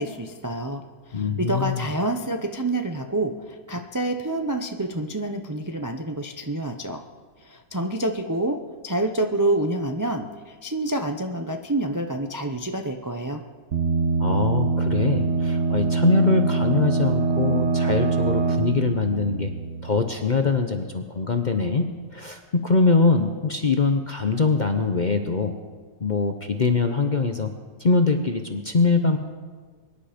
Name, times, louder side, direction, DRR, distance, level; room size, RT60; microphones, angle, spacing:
voice 1, 0.0-7.0 7.4-13.4, right 1 dB, 30° right, 4 dB, 0.3 m, -27 dB
voice 2, 1.1-1.9 14.2-19.5 19.8-21.9 22.1-25.5 26.0-27.5 27.8-29.2, left 4 dB, 40° left, 6 dB, 0.6 m, -23 dB
sound 1, 13.7-20.3, right 4 dB, 50° right, 1.5 m, -24 dB
23.5 x 10.5 x 5.1 m, 1.5 s
omnidirectional pair, 1.8 m